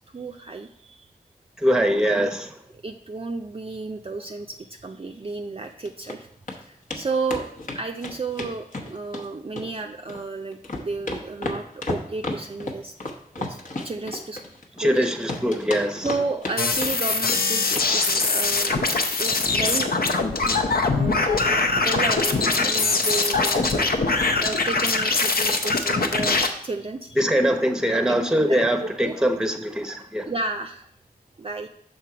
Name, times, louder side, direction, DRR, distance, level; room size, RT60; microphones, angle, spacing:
voice 1, 0.1-1.1 2.2-2.3 2.7-6.3 6.6-12.9 13.4-13.6 13.8-14.4 14.8-15.1 16.0-19.9 20.7-21.3 21.7-23.8 24.4-27.2 27.9-28.2 28.5-29.2 30.2-30.9 31.4-31.7, right 3 dB, 35° right, 3 dB, 0.4 m, -32 dB
voice 2, 1.6-2.5 14.8-16.1 27.2-30.3, equal, 5° right, 6 dB, 0.8 m, -22 dB
sound 1, 5.6-6.2 6.5-6.6 6.9-7.0 7.3-9.3 9.6-10.2 10.5-15.0 15.3-16.6 16.8-17.4 17.7-17.9 18.2-18.4 18.7-18.8 19.1-19.2, left 2 dB, 55° left, 1.0 m, -32 dB
sound 2, 16.6-26.5, left 3 dB, 75° left, 0.6 m, -22 dB
6.1 x 3.9 x 5.7 m, 0.70 s
wide cardioid pair, 60°, 16 cm